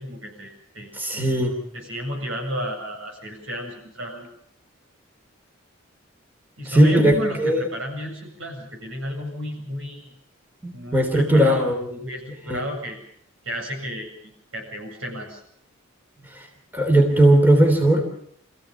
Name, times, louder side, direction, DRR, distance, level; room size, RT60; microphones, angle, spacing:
voice 1, 0.0-1.4 1.7-4.3 6.6-10.1 10.7-11.7 12.0-13.0 13.4-15.4, equal, 75° right, 1 dB, 7.9 m, -33 dB
voice 2, 0.9-1.6 6.6-7.7 10.6-11.9 12.5-12.6 16.2-16.4 16.7-18.0, right 1 dB, 10° right, 2 dB, 3.2 m, -18 dB
26.5 x 15.5 x 7.2 m, 0.67 s
head